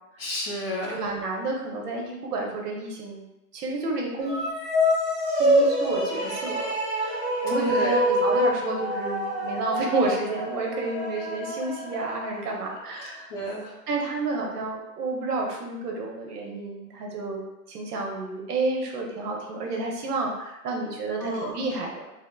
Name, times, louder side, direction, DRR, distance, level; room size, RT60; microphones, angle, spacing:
voice 1, 0.2-1.0 7.0-7.2 7.5-8.0 13.3-13.7 21.2-21.5, left 1 dB, 40° left, -4 dB, 0.5 m, -31 dB
voice 2, 0.9-3.2 3.5-4.4 5.4-6.8 7.4-13.3 13.9-22.1, right 3 dB, 75° right, 0 dB, 0.8 m, -30 dB
sound 1, 4.2-12.7, equal, ahead, 0.9 m, -26 dB
3.3 x 2.0 x 2.2 m, 0.95 s
hypercardioid pair, 165°, 47 cm